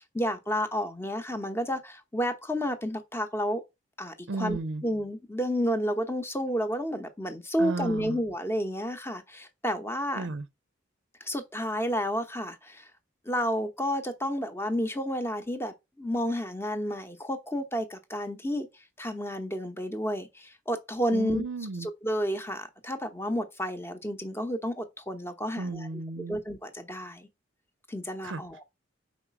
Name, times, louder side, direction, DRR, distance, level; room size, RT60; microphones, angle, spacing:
voice 1, 0.0-3.6 4.0-10.3 11.2-12.9 13.3-18.7 19.0-21.4 21.8-25.9 26.3-27.3 27.9-28.6, equal, 10° left, 0.9 m, -31 dB
voice 2, 4.3-4.8 7.6-8.2 10.2-10.5 21.1-21.9 25.6-26.4 28.2-28.4, right 3 dB, 70° right, 0.6 m, -34 dB
5.0 x 4.1 x 5.8 m
head